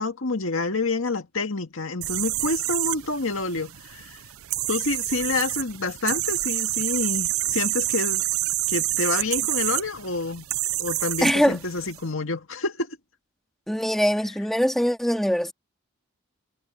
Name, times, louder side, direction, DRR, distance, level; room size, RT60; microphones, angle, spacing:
voice 1, 0.0-4.2 4.7-8.2 8.7-10.5 10.8-13.0, left 3 dB, 75° left, 1.9 m, -28 dB
sound 1, 2.0-12.0, right 16 dB, 85° right, 0.7 m, -28 dB
voice 2, 11.2-11.6 13.7-15.5, equal, ahead, 2.1 m, -22 dB
head